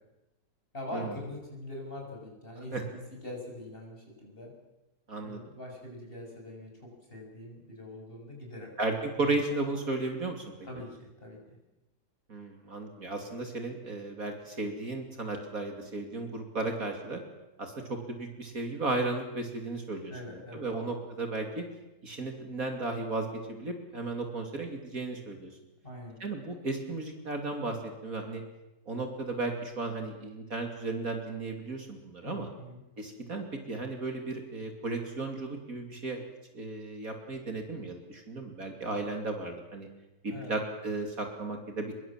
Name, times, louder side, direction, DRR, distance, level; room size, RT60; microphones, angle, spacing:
voice 1, 0.7-4.5 5.2-8.7 9.2-9.4 10.6-11.6 20.1-20.8 25.8-26.2 32.2-32.8 40.3-40.5, left 1 dB, 30° left, 0 dB, 7.3 m, -43 dB
voice 2, 5.1-5.4 8.8-10.4 12.3-17.2 17.6-21.6 22.0-25.5 26.2-27.8 28.0-28.4 28.9-32.5 33.0-36.2 36.5-39.9 40.2-42.0, right 3 dB, 55° right, 4 dB, 3.3 m, -34 dB
24.5 x 22.5 x 7.5 m, 0.97 s
omnidirectional pair, 1.8 m